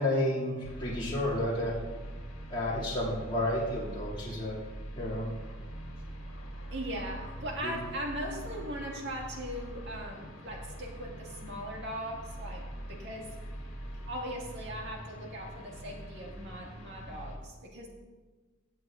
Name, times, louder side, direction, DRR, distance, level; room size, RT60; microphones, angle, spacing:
voice 1, 0.0-1.8 2.5-4.6 5.0-5.3 7.6-7.7, left 1 dB, 25° left, -7 dB, 2.3 m, -31 dB
sound 1, 0.6-17.4, right 1 dB, 75° left, 1.7 m, -43 dB
voice 2, 6.7-13.3 14.1-17.9, equal, 60° right, -1 dB, 2.0 m, -39 dB
17.0 x 7.4 x 2.5 m, 1.3 s
head